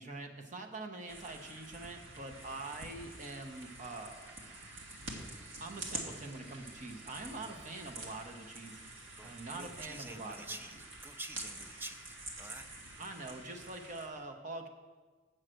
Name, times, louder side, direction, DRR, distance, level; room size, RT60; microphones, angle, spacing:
voice 1, 0.0-4.4 5.6-8.8 9.2-10.6 13.0-14.7, right 2 dB, 40° right, 5 dB, 0.9 m, -44 dB
sound 1, 1.1-14.1, right 2 dB, 80° right, 1.5 m, -47 dB
voice 2, 9.2-13.0, right 2 dB, 10° right, 8 dB, 0.4 m, -48 dB
7.7 x 5.6 x 7.6 m, 1.4 s
head